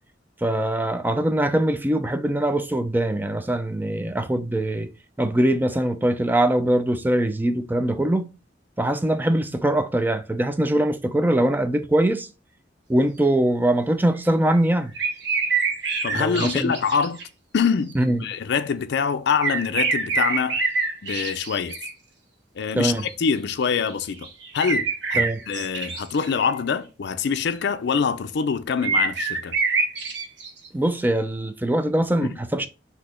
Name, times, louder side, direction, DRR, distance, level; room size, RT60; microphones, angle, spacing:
voice 1, 0.4-4.9 5.2-8.3 8.8-12.3 12.9-14.9 16.1-16.8 18.0-18.2 22.8-23.0 25.2-25.4 30.7-32.7, right 1 dB, 10° right, 0.4 m, -22 dB
sound 1, 14.5-14.7 15.0-17.2 17.9-18.0 19.4-21.9 23.0-23.1 23.5-23.9 24.2-26.6 28.8-30.7, right 4 dB, 70° right, 1.1 m, -25 dB
voice 2, 16.0-17.2 17.5-20.6 21.0-21.8 22.6-24.3 24.5-29.6 32.2-32.4, left 6 dB, 65° left, 0.4 m, -25 dB
4.2 x 2.8 x 4.3 m
head